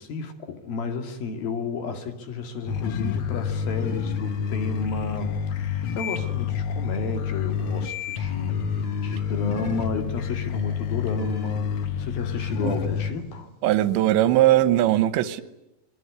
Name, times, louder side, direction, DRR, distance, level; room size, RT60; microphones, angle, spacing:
voice 1, 0.0-13.5, left 4 dB, 60° left, 3.9 m, -32 dB
sound 1, 2.7-13.1, left 7 dB, 80° left, 1.2 m, -28 dB
voice 2, 13.6-15.4, right 13 dB, 90° right, 3.4 m, -20 dB
25.5 x 23.0 x 9.8 m
omnidirectional pair, 5.0 m